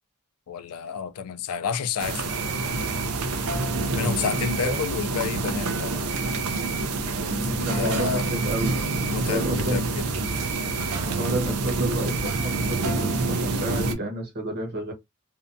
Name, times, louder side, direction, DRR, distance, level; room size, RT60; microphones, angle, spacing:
voice 1, 0.5-2.5 3.9-6.1 7.5-8.3 9.1-10.1, left 7 dB, 75° left, 0.4 m, -30 dB
sound 1, 2.0-13.9, right 3 dB, 85° right, 0.5 m, -27 dB
voice 2, 4.3-4.8 7.3-8.9 9.2-9.8 11.1-14.9, right 1 dB, 50° right, 1.0 m, -31 dB
2.7 x 2.2 x 2.5 m
head